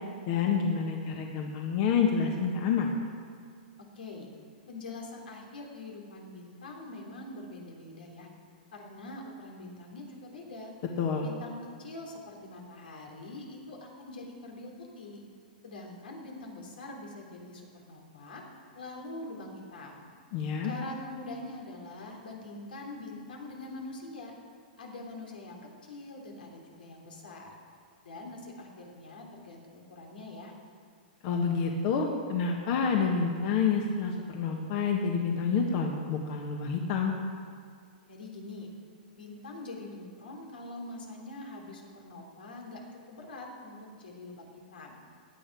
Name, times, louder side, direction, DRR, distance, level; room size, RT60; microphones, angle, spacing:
voice 1, 0.3-2.9 11.0-11.3 20.3-20.7 31.2-37.1, left 6 dB, 45° left, 1 dB, 1.5 m, -28 dB
voice 2, 3.9-4.3 4.7-8.3 8.7-10.7 11.2-15.2 15.6-18.4 18.7-20.0 20.6-24.3 24.8-27.6 28.0-30.5 38.1-38.7 39.1-42.8 43.1-45.0, left 2 dB, 90° left, 0 dB, 3.3 m, -44 dB
16.5 x 10.5 x 4.8 m, 2.1 s
hypercardioid pair, 145°, 5 cm